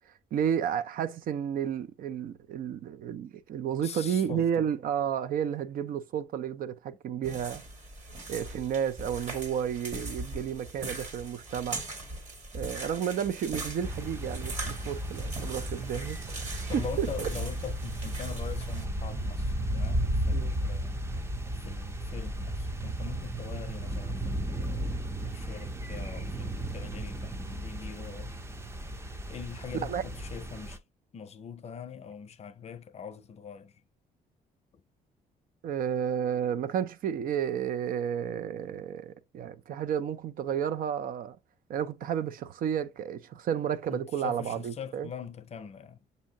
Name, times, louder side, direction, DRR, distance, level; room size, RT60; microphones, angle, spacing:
voice 1, 0.3-7.6 8.3-11.8 12.5-16.4 16.7-17.3 20.3-20.5 29.8-30.0 35.6-41.4 41.7-45.1, right 8 dB, 65° right, 0.5 m, -32 dB
voice 2, 3.8-4.7 16.7-21.0 21.6-28.3 29.3-30.8 31.1-33.7 43.9-46.0, left 7 dB, 45° left, 0.5 m, -42 dB
sound 1, 7.2-18.8, right 2 dB, 50° right, 1.7 m, -40 dB
sound 2, 13.8-30.8, right 1 dB, 15° right, 0.5 m, -34 dB
6.3 x 2.7 x 2.7 m
cardioid pair, 100°, 16 cm